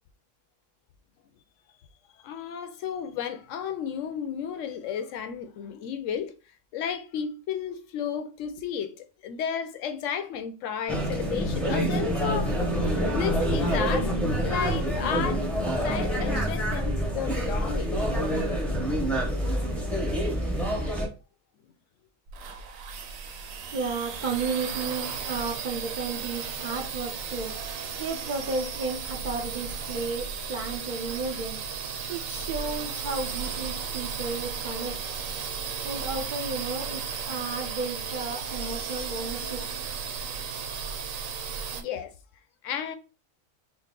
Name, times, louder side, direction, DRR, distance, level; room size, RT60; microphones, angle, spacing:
voice 1, 2.2-6.3 6.7-15.5 15.8-18.0 19.4-19.5 41.7-42.1 42.6-42.9, left 8 dB, 75° left, 0.9 m, -33 dB
sound 1, 10.9-21.1, equal, ahead, 0.7 m, -27 dB
sound 2, 22.3-41.8, right 6 dB, 85° right, 1.0 m, -35 dB
voice 2, 23.6-27.6 28.0-31.6 32.1-35.0 35.8-39.6, right 4 dB, 45° right, 0.7 m, -33 dB
sound 3, 29.8-30.2 30.9-31.2 31.9-32.3 33.0-33.5 34.0-34.5 35.1-35.6 36.2-36.5 37.2-37.6, right 2 dB, 15° right, 1.1 m, -49 dB
4.0 x 2.1 x 3.7 m
omnidirectional pair, 1.4 m